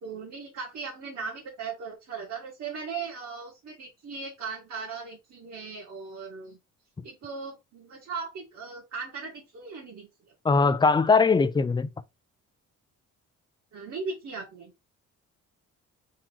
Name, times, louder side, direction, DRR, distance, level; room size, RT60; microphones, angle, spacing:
voice 1, 0.0-6.6 7.0-10.1 13.7-14.7, right 5 dB, 55° right, 1.6 m, -38 dB
voice 2, 10.4-11.9, left 4 dB, 15° left, 0.4 m, -21 dB
3.8 x 2.9 x 4.2 m
cardioid pair, 90°, 30 cm